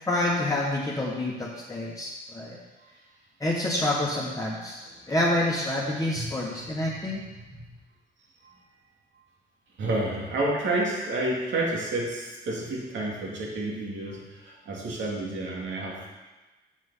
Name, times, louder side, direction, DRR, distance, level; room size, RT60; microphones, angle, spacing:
voice 1, 0.0-2.6 3.4-7.2, left 1 dB, 15° left, -5 dB, 1.5 m, -28 dB
voice 2, 9.8-16.1, right 2 dB, 70° right, -2 dB, 2.4 m, -30 dB
7.6 x 6.2 x 5.6 m, 1.2 s
cardioid pair, 90°, 20 cm